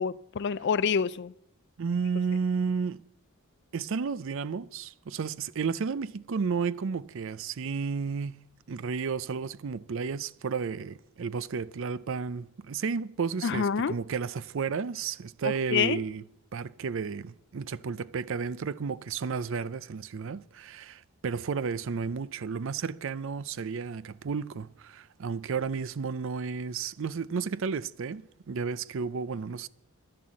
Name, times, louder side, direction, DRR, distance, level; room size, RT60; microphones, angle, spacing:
voice 1, 0.0-1.3 13.4-13.9 15.7-16.0, left 6 dB, 55° left, 0.4 m, -27 dB
voice 2, 1.8-3.0 3.7-8.4 8.7-16.2 16.5-29.7, right 5 dB, 60° right, 0.5 m, -32 dB
11.0 x 11.0 x 7.5 m
head